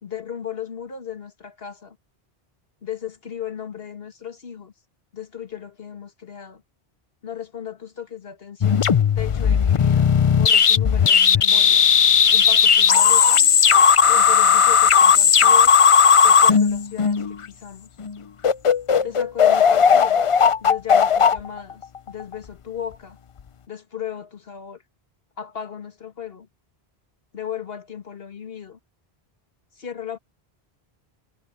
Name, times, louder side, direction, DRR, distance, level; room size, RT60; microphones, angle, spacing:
voice 1, 0.0-2.0 2.8-4.7 5.1-6.6 7.2-8.9 9.2-11.8 12.3-13.5 14.0-15.8 16.2-17.9 19.0-20.3 20.6-23.2 23.7-24.8 25.4-26.5 27.3-28.8 29.7-30.2, left 9 dB, 65° left, 1.9 m, -36 dB
sound 1, 8.6-17.4 18.0-18.1 18.4-22.3, left 7 dB, 45° left, 0.4 m, -16 dB
omnidirectional pair, 1.1 m